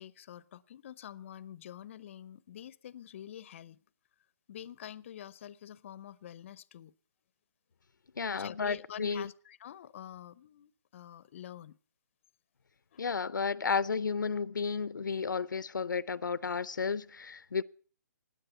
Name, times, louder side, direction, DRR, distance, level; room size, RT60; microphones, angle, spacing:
voice 1, 0.0-3.8 4.5-6.9 8.3-11.8 12.9-13.1, left 10 dB, 40° left, 0.6 m, -47 dB
voice 2, 8.2-9.3 13.0-17.6, left 5 dB, 85° left, 0.6 m, -32 dB
16.5 x 9.6 x 6.7 m
hypercardioid pair, 150°, 10 cm